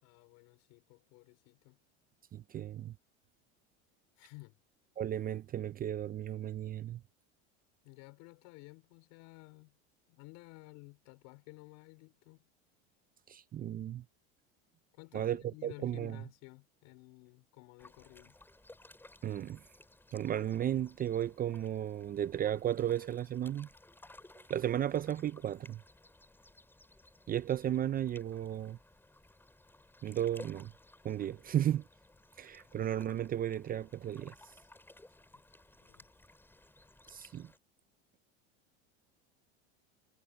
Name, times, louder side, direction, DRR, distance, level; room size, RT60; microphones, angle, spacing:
voice 1, 0.0-1.8 4.2-4.6 7.8-9.8 10.1-12.5 14.9-18.4 35.8-36.1, left 26 dB, 65° left, 4.3 m, -54 dB
voice 2, 2.3-2.9 5.0-7.0 13.3-14.0 15.1-15.4 15.6-16.2 19.2-19.6 20.1-23.7 24.5-25.8 27.3-28.8 30.0-30.7 31.0-31.8 32.4-34.3 37.1-37.5, right 11 dB, 25° right, 0.6 m, -34 dB
sound 1, 17.8-37.6, left 2 dB, 5° left, 8.0 m, -58 dB
supercardioid pair, 120°, 33 cm